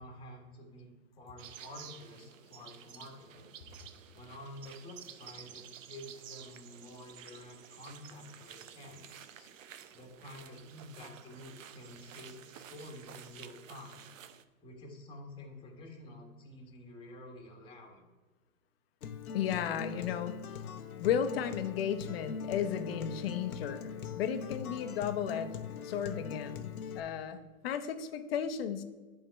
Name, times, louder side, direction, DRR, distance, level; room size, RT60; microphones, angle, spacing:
voice 1, 0.0-3.5 4.1-9.3 9.9-14.1 14.6-18.0, left 1 dB, 10° left, 0 dB, 1.5 m, -50 dB
sound 1, 1.4-14.4, right 9 dB, 65° right, 0.8 m, -52 dB
Acoustic guitar, 19.0-27.0, left 7 dB, 80° left, 0.9 m, -41 dB
voice 2, 19.3-20.4 21.0-25.6 25.8-28.8, left 8 dB, 45° left, 9 dB, 0.8 m, -34 dB
11.0 x 3.7 x 4.6 m, 1.3 s
hypercardioid pair, 145°, 43 cm